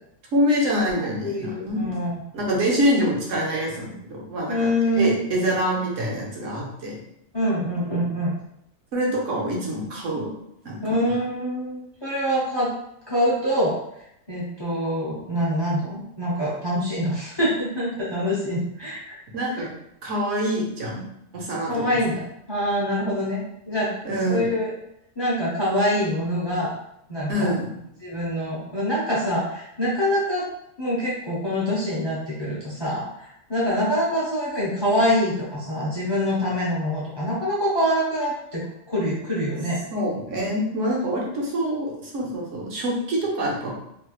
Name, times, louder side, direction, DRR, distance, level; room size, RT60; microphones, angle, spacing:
voice 1, 0.3-1.8 2.3-4.7 5.0-7.0 8.9-10.3 10.6-10.8 19.3-19.7 20.0-21.1 21.3-21.8 24.0-24.4 27.3-27.7 39.9-43.7, equal, 70° right, -3 dB, 1.1 m, -25 dB
voice 2, 1.2-2.2 4.5-5.2 7.3-8.3 10.8-12.7 13.1-13.8 14.3-19.2 21.7-22.2 22.5-23.9 24.3-24.7 25.2-26.7 27.1-27.5 28.0-30.5 30.8-39.8, equal, 25° left, -7 dB, 0.6 m, -25 dB
3.1 x 2.9 x 2.3 m, 0.77 s
omnidirectional pair, 1.4 m